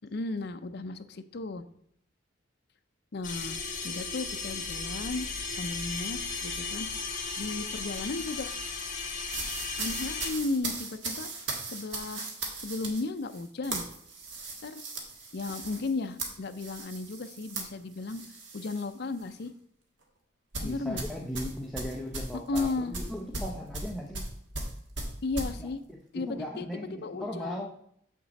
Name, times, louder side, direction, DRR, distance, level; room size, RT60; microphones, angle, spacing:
voice 1, 0.0-1.6 3.1-3.6 3.8-5.3 5.5-6.9 7.4-8.5 9.8-11.3 11.7-12.3 12.6-13.9 14.6-14.8 15.3-18.2 18.5-19.5 20.6-21.0 22.5-22.9 25.2-25.8 26.1-27.6, left 3 dB, 60° left, 9 dB, 0.5 m, -34 dB
sound 1, 3.2-10.3, left 4 dB, 45° left, 1.4 m, -35 dB
sound 2, 9.3-18.9 19.2-19.5 20.5-25.5, right 3 dB, 70° right, 1.5 m, -38 dB
voice 2, 20.6-24.3 25.6-27.7, equal, ahead, -1 dB, 0.7 m, -38 dB
7.3 x 6.0 x 4.0 m, 0.70 s
head